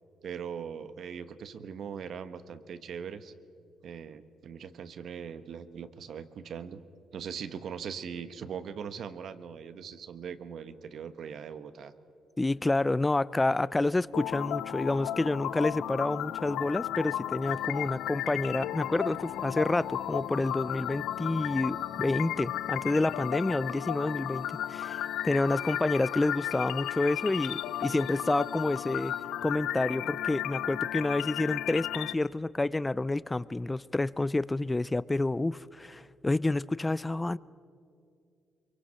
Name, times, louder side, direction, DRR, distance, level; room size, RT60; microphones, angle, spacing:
voice 1, 0.2-3.3 3.8-6.8 7.1-11.9, right 7 dB, 65° right, 11 dB, 1.1 m, -40 dB
voice 2, 12.4-29.1 29.4-37.4, left 2 dB, 15° left, 20 dB, 0.4 m, -29 dB
sound 1, 14.1-32.1, left 12 dB, 85° left, 0.5 m, -34 dB
sound 2, 17.4-29.2, equal, 5° right, 2.1 m, -61 dB
23.5 x 23.5 x 5.7 m, 2.5 s
cardioid pair, 90°, 0 cm